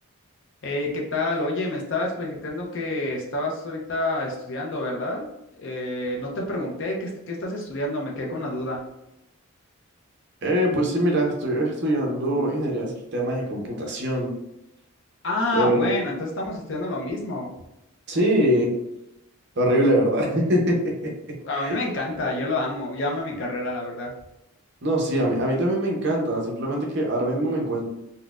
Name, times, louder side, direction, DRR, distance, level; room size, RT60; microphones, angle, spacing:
voice 1, 0.6-5.2 5.6-8.8 15.2-17.5 21.4-24.1, left 2 dB, 55° left, -1 dB, 0.5 m, -28 dB
voice 2, 10.4-14.3 15.5-15.9 18.1-18.7 19.6-21.1 21.6-21.7 24.8-27.9, right 1 dB, 50° right, -1 dB, 0.7 m, -23 dB
4.0 x 2.1 x 2.3 m, 0.88 s
head